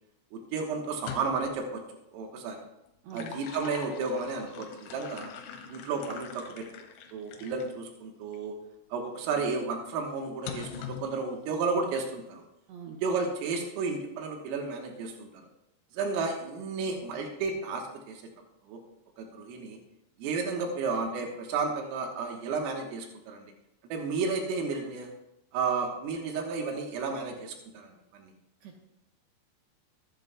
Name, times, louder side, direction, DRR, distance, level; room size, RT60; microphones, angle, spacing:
voice 1, 0.3-1.8 2.1-2.6 3.1-5.3 5.7-6.7 7.1-8.6 8.9-12.4 13.0-15.4 15.9-18.2 18.6-18.8 19.2-19.8 20.2-23.5 23.9-25.1 25.5-28.3, right 4 dB, 85° right, 1 dB, 4.0 m, -32 dB
sound 1, 0.9-1.6 2.9-7.7 8.3-8.5 10.5-11.1, left 7 dB, 80° left, 3.7 m, -43 dB
voice 2, 12.7-13.0 28.6-28.8, right 6 dB, 70° right, 1 dB, 2.7 m, -44 dB
23.5 x 10.5 x 2.4 m, 0.87 s
omnidirectional pair, 5.8 m